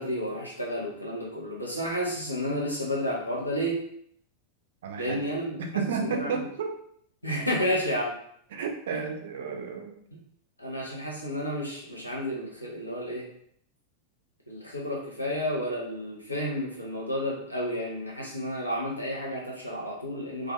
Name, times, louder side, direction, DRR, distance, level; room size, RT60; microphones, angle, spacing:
voice 1, 0.0-3.8 5.0-6.4 7.2-8.1 8.9-9.0 10.1-10.2 10.6-13.3 14.5-20.5, equal, 90° left, -3 dB, 0.7 m, -31 dB
voice 2, 4.8-5.2 5.6-6.7 8.5-10.0, right 6 dB, 60° right, 4 dB, 0.4 m, -32 dB
2.5 x 2.3 x 2.3 m, 0.66 s
figure-of-eight pair, 90°, 0 cm